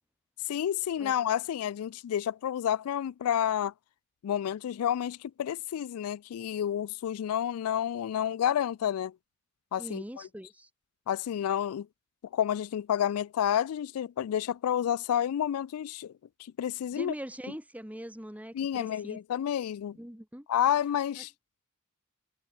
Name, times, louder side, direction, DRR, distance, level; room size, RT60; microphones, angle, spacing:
voice 1, 0.5-3.7 4.2-9.1 9.7-10.3 11.1-11.9 12.3-16.1 16.4-17.1 18.5-20.0 20.5-21.3, left 10 dB, 85° left, 0.3 m, -30 dB
voice 2, 9.8-10.7 16.9-19.2 20.0-20.5, equal, 5° right, 1.6 m, -42 dB
head